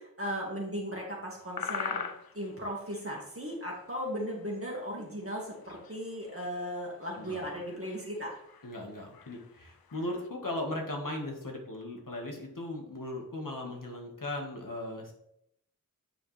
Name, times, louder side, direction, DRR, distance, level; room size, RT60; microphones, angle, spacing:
voice 1, 0.0-2.1 2.3-8.4, equal, 40° right, -3 dB, 2.0 m, -37 dB
sound 1, 1.4-4.6 5.0-5.1 5.3-10.3, left 7 dB, 85° left, 0.5 m, -42 dB
voice 2, 7.2-7.5 8.6-15.1, left 1 dB, 65° left, 1 dB, 1.7 m, -38 dB
8.7 x 4.9 x 3.3 m, 0.76 s
wide cardioid pair, 40°, 35 cm